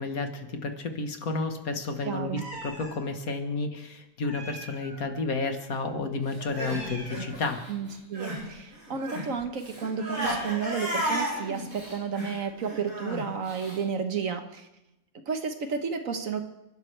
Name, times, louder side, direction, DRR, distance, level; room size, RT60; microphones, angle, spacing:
voice 1, 0.0-7.6, left 3 dB, 65° left, 6 dB, 1.8 m, -31 dB
voice 2, 2.0-2.5 7.7-14.7 15.3-16.4, right 6 dB, 60° right, 7 dB, 1.5 m, -32 dB
Meow, 2.4-3.0 4.2-5.1 6.4-7.5, right 1 dB, 45° right, 4.3 m, -43 dB
Crying sobbing, 6.3-8.5 8.7-13.8, equal, 90° right, 6.4 m, -34 dB
29.0 x 12.0 x 3.3 m, 0.91 s
omnidirectional pair, 1.6 m